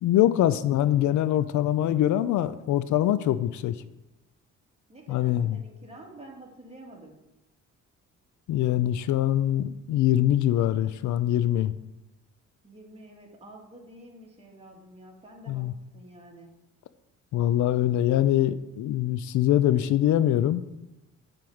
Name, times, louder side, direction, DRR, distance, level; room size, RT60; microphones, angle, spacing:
voice 1, 0.0-3.8 5.1-5.6 8.5-11.7 15.5-15.7 17.3-20.6, left 12 dB, 75° left, 14 dB, 0.5 m, -23 dB
voice 2, 4.9-7.2 12.6-16.5, right 1 dB, 20° right, -1 dB, 2.4 m, -48 dB
7.7 x 4.7 x 7.2 m, 0.94 s
cardioid pair, 90°, 30 cm